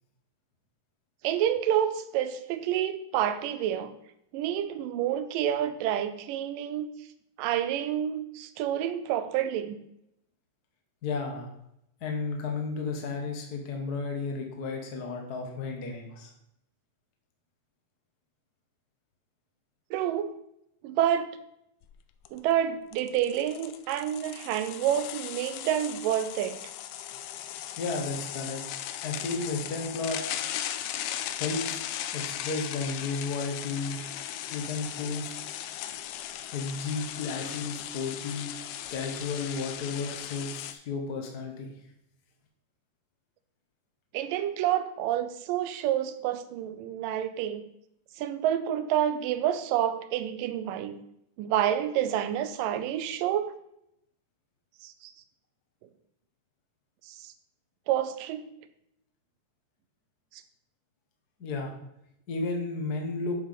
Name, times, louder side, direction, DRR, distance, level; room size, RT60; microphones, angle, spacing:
voice 1, 1.2-3.9 4.3-6.9 7.4-9.8 19.9-20.3 20.8-21.4 22.3-26.6 44.1-47.7 48.2-51.0 51.4-53.5 54.8-55.1 57.0-57.3 57.9-58.4 60.3-60.4, right 10 dB, 90° right, 11 dB, 2.4 m, -28 dB
voice 2, 11.0-11.5 12.0-16.3 27.8-28.6 29.0-30.2 31.4-31.9 32.1-34.0 34.5-35.4 36.5-38.5 38.9-41.7 61.4-61.7 62.3-63.4, left 4 dB, 50° left, 2 dB, 1.1 m, -33 dB
sound 1, 21.8-21.9 22.2-22.4 22.9-40.7, left 11 dB, 90° left, 2.3 m, -37 dB
8.5 x 5.8 x 5.8 m, 0.78 s
omnidirectional pair, 3.8 m